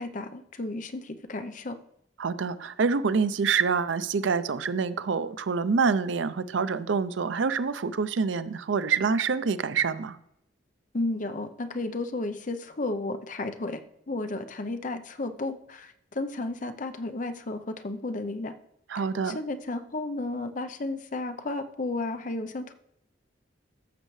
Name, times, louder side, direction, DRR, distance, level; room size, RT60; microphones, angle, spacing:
voice 1, 0.0-1.8 10.9-18.5 18.9-22.7, left 2 dB, 45° left, 9 dB, 0.7 m, -33 dB
voice 2, 2.2-10.2 18.9-19.4, right 5 dB, 85° right, 13 dB, 0.5 m, -26 dB
14.0 x 6.5 x 3.2 m, 0.77 s
head